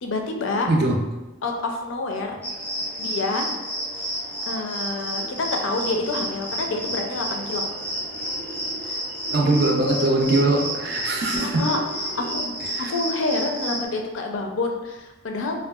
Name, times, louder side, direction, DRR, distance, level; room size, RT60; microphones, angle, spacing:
voice 1, 0.0-0.7 1.4-2.4 3.0-3.5 4.5-7.7 8.8-9.0 11.3-11.8 12.1-15.6, left 3 dB, 70° left, 3 dB, 0.4 m, -28 dB
voice 2, 0.6-1.0 9.3-11.6 12.7-12.9, right 2 dB, 50° right, 1 dB, 0.4 m, -21 dB
sound 1, 2.4-13.8, right 1 dB, 10° left, 0.4 m, -31 dB
sound 2, 3.9-12.6, right 1 dB, 85° right, 0.7 m, -43 dB
3.5 x 2.2 x 2.3 m, 1.0 s
head